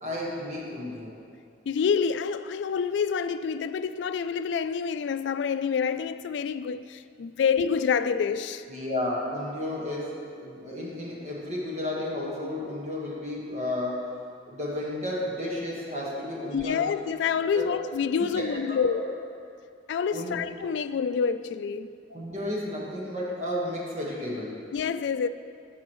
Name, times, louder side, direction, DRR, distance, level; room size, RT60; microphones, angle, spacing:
voice 1, 0.0-1.1 8.7-14.0 14.5-16.9 17.5-17.7 18.3-19.1 20.1-20.4 22.1-24.6, left 1 dB, 40° right, 1.4 m, -32 dB
voice 2, 1.7-8.6 16.5-19.0 19.9-21.9 24.7-25.3, left 6 dB, 80° left, 0.3 m, -27 dB
15.0 x 6.2 x 3.1 m
head